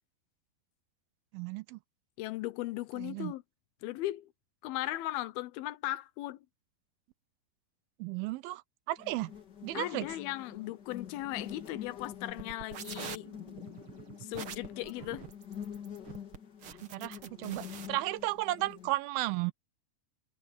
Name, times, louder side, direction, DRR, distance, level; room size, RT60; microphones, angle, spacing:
voice 1, 1.3-1.8 3.0-3.3 8.0-8.6 8.9-9.3 9.6-10.1 16.9-19.5, right 18 dB, 80° right, 2.4 m, -34 dB
voice 2, 2.2-3.4 3.8-4.3 4.6-6.5 9.7-13.3 14.2-15.2, left 16 dB, 80° left, 2.6 m, -37 dB
sound 1, 9.0-18.9, left 8 dB, 35° left, 1.9 m, -46 dB
sound 2, 12.3-17.9, right 8 dB, 55° right, 1.5 m, -45 dB
omnidirectional pair, 4.4 m